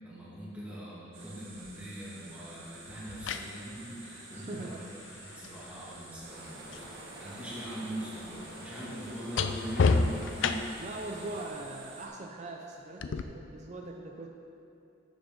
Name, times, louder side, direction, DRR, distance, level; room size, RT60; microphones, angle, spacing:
voice 1, 0.0-4.8 5.2-6.9 7.2-10.7, equal, 5° right, -8 dB, 1.9 m, -41 dB
sound 1, 1.1-12.1, right 3 dB, 85° right, 2.0 m, -51 dB
sound 2, 1.6-1.8 2.9-6.9 7.2-11.0 13.0-13.2, left 4 dB, 70° left, 0.4 m, -33 dB
voice 2, 4.3-4.8 10.8-14.3, right 2 dB, 35° right, 1 dB, 0.5 m, -41 dB
sound 3, 6.2-11.5, right 1 dB, 50° right, 1.4 m, -49 dB
11.5 x 7.4 x 3.7 m, 2.8 s
head